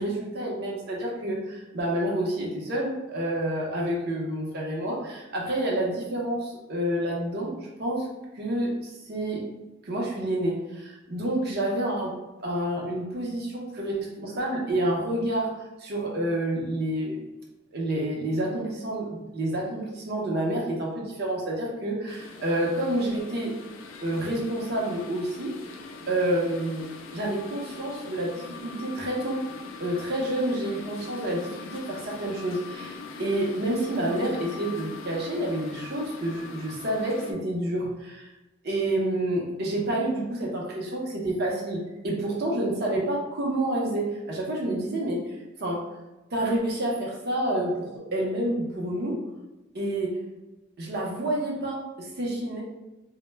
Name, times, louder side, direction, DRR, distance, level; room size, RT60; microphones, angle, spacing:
voice 1, 0.0-8.1 8.3-9.4 9.9-12.1 12.4-17.2 17.7-23.5 24.0-25.5 26.1-29.4 29.8-38.3 38.6-45.2 45.6-45.8 46.3-49.2 49.7-50.1 50.8-52.6, right 1 dB, 55° right, -2 dB, 0.6 m, -29 dB
sound 1, 22.1-37.3, left 4 dB, 75° left, 0.3 m, -42 dB
2.1 x 2.1 x 3.2 m, 1.1 s
head